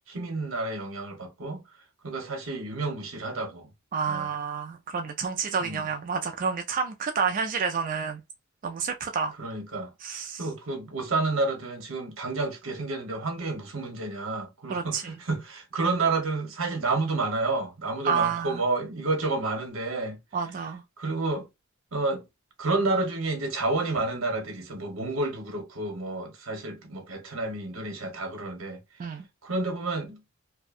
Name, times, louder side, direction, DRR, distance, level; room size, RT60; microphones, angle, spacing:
voice 1, 0.1-1.6 2.0-3.7 4.0-4.3 5.6-5.9 9.4-20.2 21.0-21.5 21.9-22.2 22.6-28.8 29.4-30.2, right 3 dB, 70° right, 0.9 m, -30 dB
voice 2, 3.9-8.2 8.6-9.3 10.0-10.4 14.7-15.1 18.0-18.6 20.3-20.8 29.0-29.2, right 6 dB, 40° right, 0.3 m, -29 dB
2.6 x 2.1 x 2.4 m
head